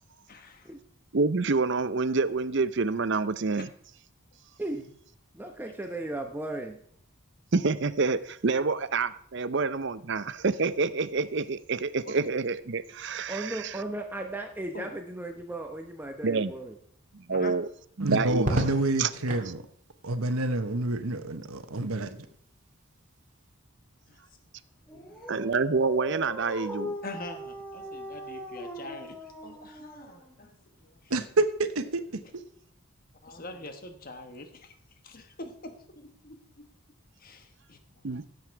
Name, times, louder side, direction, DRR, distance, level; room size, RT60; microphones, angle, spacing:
voice 1, 0.3-0.7 12.0-12.1 14.7-15.0 17.3-17.5 19.0-19.1 24.1-24.2 24.9-25.3 27.0-30.5 30.8-31.1 33.2-34.7 35.0-36.7 37.2-38.1, left 2 dB, 40° left, 1.2 m, -44 dB
voice 2, 1.1-3.7 7.5-13.7 16.2-16.5 17.1-17.7 18.0-18.5 19.0-19.1 25.3-26.9 38.0-38.2, right 4 dB, 55° right, 0.6 m, -27 dB
voice 3, 5.3-6.8 13.3-16.8, right 1 dB, 10° right, 0.8 m, -36 dB
voice 4, 18.0-19.6 20.0-22.2 31.1-32.0, right 2 dB, 90° right, 1.1 m, -28 dB
Crackle, 18.4-19.5 21.1-21.7, right 1 dB, 35° right, 2.1 m, -33 dB
Dog, 24.9-30.5, equal, 5° left, 1.5 m, -40 dB
16.5 x 7.9 x 4.6 m
head